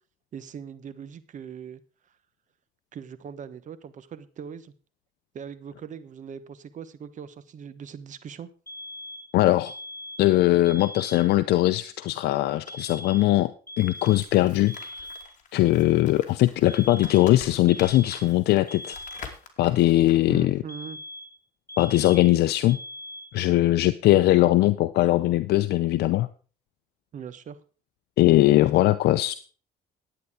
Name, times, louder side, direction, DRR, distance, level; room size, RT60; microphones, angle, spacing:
voice 1, 0.3-1.8 2.9-4.7 5.3-8.5 20.3-21.0 27.1-27.6, right 7 dB, 50° right, 14 dB, 1.1 m, -40 dB
sound 1, 8.7-9.3 9.7-10.3 10.7-11.3 12.7-13.3 13.7-14.3 14.7-15.3 16.7-17.3 17.7-18.3 18.7-19.3 20.7-21.4 21.7-22.4 22.7-23.4, left 1 dB, 15° left, 2.9 m, -40 dB
voice 2, 9.3-9.7 10.2-14.7 15.5-19.0 19.6-20.6 21.8-22.8 23.3-26.3 28.2-29.3, left 16 dB, 75° left, 12 dB, 0.6 m, -20 dB
sound 2, 13.8-20.2, left 6 dB, 50° left, 2.6 m, -46 dB
11.0 x 9.2 x 4.9 m, 0.38 s
cardioid pair, 110°, 17 cm